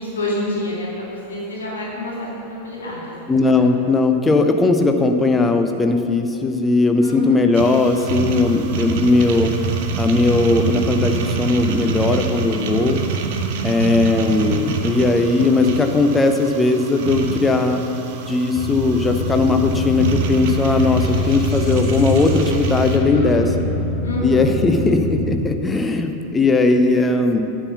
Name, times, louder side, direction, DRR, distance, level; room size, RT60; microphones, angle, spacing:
voice 1, 0.0-3.7 7.0-7.5 23.1-23.6 24.0-24.9, left 1 dB, 70° left, -5 dB, 1.9 m, -28 dB
voice 2, 3.3-9.5 10.0-13.0 13.6-17.8 18.3-23.4 24.2-25.0 25.3-27.4, left 3 dB, 15° left, 6 dB, 0.6 m, -18 dB
sound 1, 7.5-23.0, right 5 dB, 50° right, 0.7 m, -26 dB
sound 2, 18.6-25.4, left 2 dB, 30° left, 1.0 m, -24 dB
8.7 x 4.5 x 7.0 m, 2.8 s
figure-of-eight pair, 90°, 0 cm